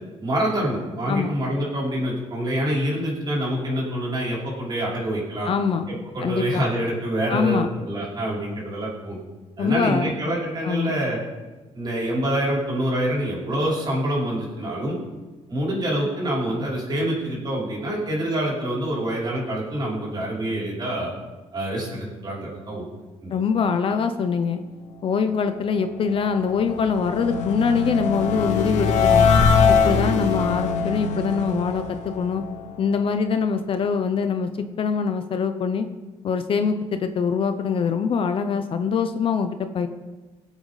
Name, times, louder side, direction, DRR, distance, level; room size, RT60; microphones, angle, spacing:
voice 1, 0.2-5.5 5.9-9.2 9.6-11.2 11.7-15.0 15.5-21.1 21.5-22.8 23.2-23.4, right 1 dB, 35° right, -5 dB, 5.0 m, -26 dB
voice 2, 5.5-5.9 6.2-6.7 7.3-7.7 9.6-10.1 10.6-11.0 23.3-24.6 25.0-29.3 29.7-32.4 32.8-34.5 34.8-35.9 36.2-39.9, left 6 dB, 45° left, 8 dB, 0.8 m, -23 dB
sound 1, 25.9-33.1, left 5 dB, 80° left, 1.5 m, -22 dB
23.0 x 8.2 x 4.1 m, 1.3 s
cardioid pair, 150°, 12 cm